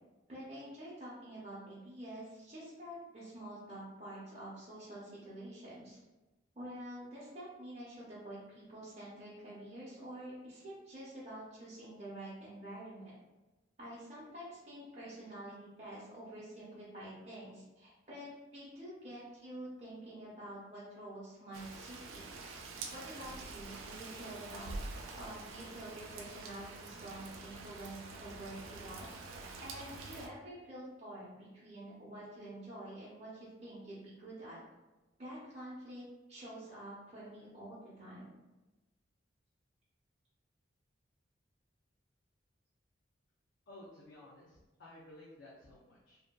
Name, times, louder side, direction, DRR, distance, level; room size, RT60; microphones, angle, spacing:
voice 1, 0.3-6.0 6.5-13.2 13.8-22.3 22.9-24.7 25.1-29.1 29.6-34.6 35.2-38.3, right 1 dB, 35° right, -9 dB, 0.6 m, -48 dB
Rain, 21.5-30.3, right 3 dB, 85° right, 0.3 m, -46 dB
voice 2, 43.7-46.2, left 1 dB, 65° left, -6 dB, 0.5 m, -55 dB
2.7 x 2.1 x 2.2 m, 1.1 s
head